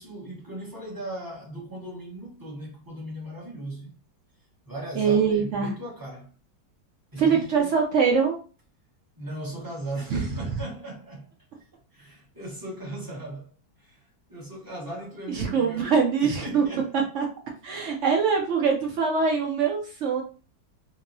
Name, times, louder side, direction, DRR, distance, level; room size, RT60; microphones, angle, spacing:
voice 1, 0.0-3.9 4.7-6.3 7.1-7.7 9.2-11.3 11.9-17.0, right 1 dB, 15° right, 0.8 m, -37 dB
voice 2, 5.0-5.7 7.2-8.4 10.1-10.2 15.3-16.6 17.1-17.2 17.6-20.2, right 6 dB, 75° right, 0.6 m, -23 dB
2.9 x 2.7 x 2.6 m
omnidirectional pair, 1.9 m